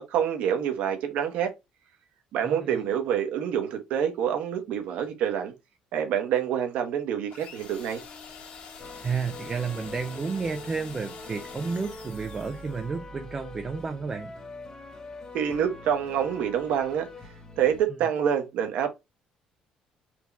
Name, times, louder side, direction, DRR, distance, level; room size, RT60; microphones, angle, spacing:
voice 1, 0.1-1.5 2.3-5.5 5.9-8.0 15.3-17.1 17.6-18.9, right 9 dB, 70° right, 1.2 m, -27 dB
sound 1, 7.3-12.9, left 5 dB, 55° left, 1.8 m, -45 dB
sound 2, 8.8-17.8, left 2 dB, 25° left, 0.8 m, -44 dB
voice 2, 9.0-14.3, right 5 dB, 20° right, 0.5 m, -31 dB
4.5 x 2.8 x 3.3 m
cardioid pair, 160°, 2 cm